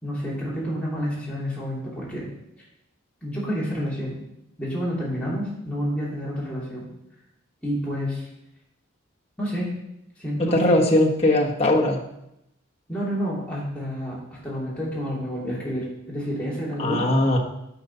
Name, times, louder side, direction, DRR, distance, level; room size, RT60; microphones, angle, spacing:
voice 1, 0.0-2.2 3.2-4.2 4.6-6.9 7.6-8.3 9.4-9.7 10.2-10.7 12.9-17.1, equal, 5° left, -7 dB, 2.6 m, -29 dB
voice 2, 10.4-12.0 16.8-17.4, left 1 dB, 30° left, -1 dB, 1.3 m, -20 dB
8.9 x 5.4 x 5.6 m, 0.84 s
head